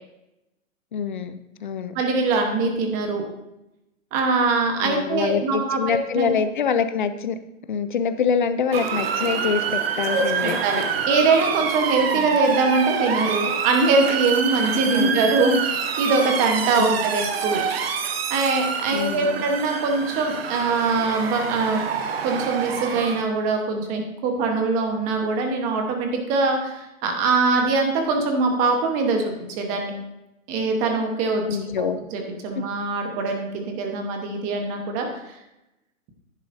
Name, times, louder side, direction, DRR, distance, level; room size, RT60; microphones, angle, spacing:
voice 1, 0.9-1.9 4.8-7.4 7.7-10.6 12.1-12.3 14.9-15.3 16.8-16.9 18.9-19.4 31.4-32.0 32.6-32.7, left 7 dB, 40° left, 11 dB, 0.4 m, -25 dB
voice 2, 1.9-3.2 4.1-6.3 10.1-17.6 18.3-21.8 22.2-29.9 30.5-31.4 31.8-35.4, right 3 dB, 20° right, 3 dB, 1.0 m, -23 dB
Motor vehicle (road) / Siren, 8.7-23.2, right 6 dB, 45° right, 1.0 m, -26 dB
10.5 x 9.3 x 2.6 m, 0.93 s
hypercardioid pair, 155°, 41 cm